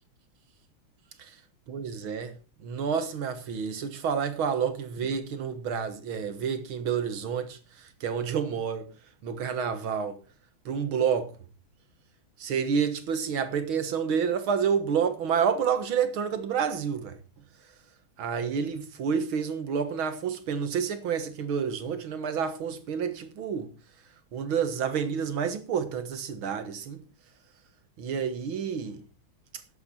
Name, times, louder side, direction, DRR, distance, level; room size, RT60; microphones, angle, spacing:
voice 1, 1.7-2.3 2.6-8.9 9.2-10.2 10.7-11.3 12.4-17.1 18.2-23.7 24.3-27.0 28.0-29.0, right 7 dB, 80° right, 2.3 m, -29 dB
13.0 x 10.5 x 4.3 m
omnidirectional pair, 2.2 m